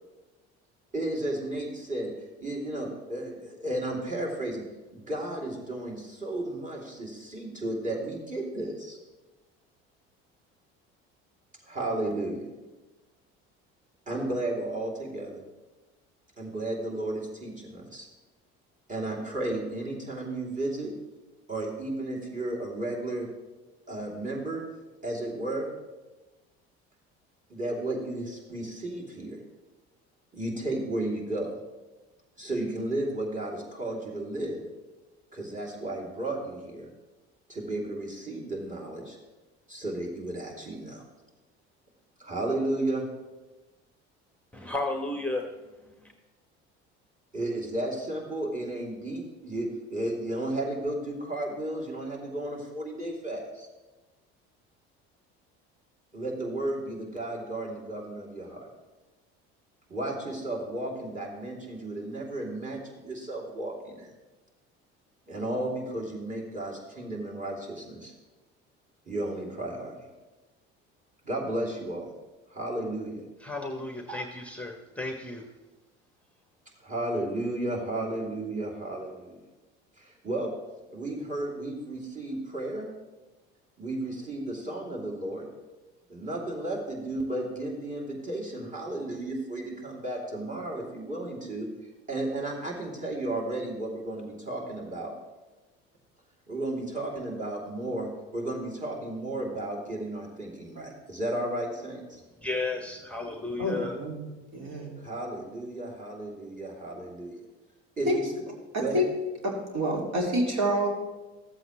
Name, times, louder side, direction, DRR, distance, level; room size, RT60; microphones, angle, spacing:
voice 1, 0.9-2.1 2.4-4.6 4.9-9.0 11.6-12.5 14.1-15.4 16.4-18.1 18.9-20.9 21.5-23.3 23.9-24.6 25.0-25.7 27.5-29.4 30.3-31.5 32.4-34.6 35.3-36.9 37.5-39.2 39.7-41.0 42.2-43.0 47.3-53.7 56.1-58.7 59.9-64.1 65.3-68.1 69.1-69.9 71.2-72.1 72.5-73.2 76.8-79.4 80.0-80.5 80.9-82.9 83.8-85.5 86.1-91.7 92.1-95.1 96.5-102.2 105.0-107.5 108.0-108.2 108.8-109.0, right 1 dB, 25° right, -3 dB, 3.1 m, -33 dB
voice 2, 44.5-45.9 73.4-75.4 102.4-104.0, left 2 dB, 5° left, 3 dB, 1.1 m, -33 dB
voice 3, 103.6-104.3 104.5-105.0 108.0-108.2 108.7-109.1 109.4-110.9, equal, 55° right, 0 dB, 2.5 m, -28 dB
14.0 x 7.8 x 3.2 m, 1.2 s
supercardioid pair, 75°, 32 cm